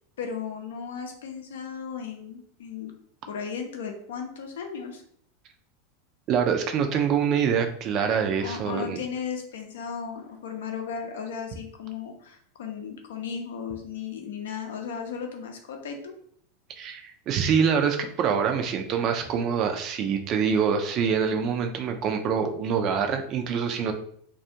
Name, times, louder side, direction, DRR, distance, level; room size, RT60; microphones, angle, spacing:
voice 1, 0.2-2.9 3.3-5.0 8.4-16.1, left 6 dB, 70° left, 3 dB, 0.5 m, -35 dB
voice 2, 6.3-9.0 16.8-23.9, right 7 dB, 45° right, 5 dB, 0.4 m, -25 dB
2.4 x 2.3 x 2.7 m, 0.63 s
hypercardioid pair, 90°, 0 cm